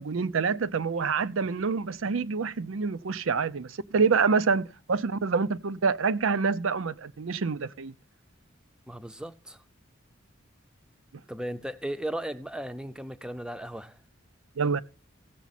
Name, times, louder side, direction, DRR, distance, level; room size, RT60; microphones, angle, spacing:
voice 1, 0.0-7.9 14.6-14.8, right 5 dB, 90° right, 0.6 m, -27 dB
voice 2, 8.9-9.6 11.3-14.0, right 1 dB, 5° right, 0.5 m, -36 dB
16.0 x 7.1 x 4.2 m
head